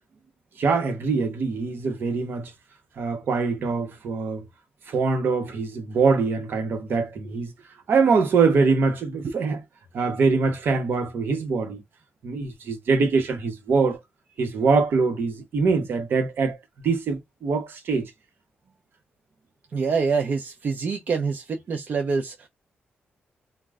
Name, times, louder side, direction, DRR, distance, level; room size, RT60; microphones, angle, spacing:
voice 1, 0.6-2.5 3.0-4.5 4.9-7.5 7.9-9.6 9.9-11.8 12.2-14.0 14.4-16.6 16.8-18.1, right 4 dB, 65° right, 0.8 m, -23 dB
voice 2, 19.7-22.5, right 5 dB, 50° right, 0.5 m, -26 dB
2.2 x 2.0 x 3.4 m
cardioid pair, 120°, 4 cm